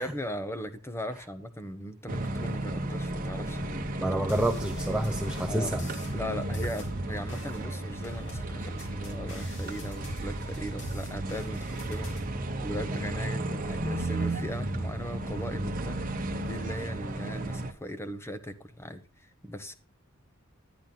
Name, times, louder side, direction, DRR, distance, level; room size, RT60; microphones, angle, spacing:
voice 1, 0.0-4.2 5.5-5.7 6.1-19.7, equal, 10° left, 1.0 m, -39 dB
sound 1, 2.1-17.7, right 1 dB, 40° right, 1.2 m, -34 dB
voice 2, 4.0-5.8, right 1 dB, 5° right, 0.6 m, -28 dB
sound 2, 4.3-12.2, equal, 60° left, 4.5 m, -44 dB
11.0 x 10.5 x 4.0 m
head